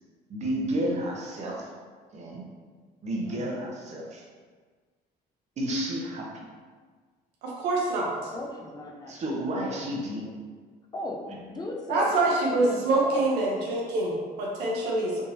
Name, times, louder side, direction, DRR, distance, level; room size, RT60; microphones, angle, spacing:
voice 1, 0.3-1.7 2.1-2.5 3.0-4.2 5.6-6.5 9.0-10.3, right 1 dB, 40° right, -2 dB, 0.8 m, -31 dB
voice 2, 3.3-3.6 8.0-9.4 10.9-12.1 12.4-13.3, left 1 dB, 25° left, 1 dB, 0.5 m, -37 dB
voice 3, 7.4-8.1 11.9-15.2, right 2 dB, 90° right, -3 dB, 0.8 m, -25 dB
3.6 x 2.7 x 2.7 m, 1.5 s
cardioid pair, 110°, 17 cm